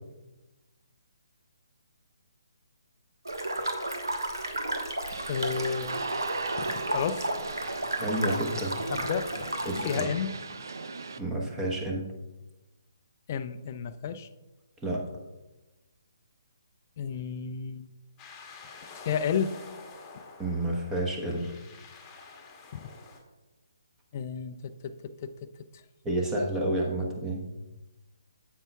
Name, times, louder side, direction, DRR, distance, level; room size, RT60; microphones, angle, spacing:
sound 1, 3.3-10.0, right 1 dB, 80° right, 1.3 m, -33 dB
sound 2, 5.1-11.2, right 4 dB, 65° right, 0.5 m, -39 dB
voice 1, 5.3-6.0 6.6-7.3 8.9-9.5 9.8-10.3 13.3-14.3 17.0-17.9 18.9-19.5 20.1-20.2 22.7-22.9 24.1-25.8, left 7 dB, 35° left, 11 dB, 0.4 m, -32 dB
voice 2, 8.0-8.7 9.6-10.1 11.2-12.0 14.8-15.1 20.4-21.5 26.0-27.4, right 1 dB, 10° right, -1 dB, 1.0 m, -30 dB
sound 3, 18.2-23.2, left 4 dB, 15° left, 1.1 m, -48 dB
9.2 x 8.0 x 2.3 m, 1.1 s
figure-of-eight pair, 140°, 2 cm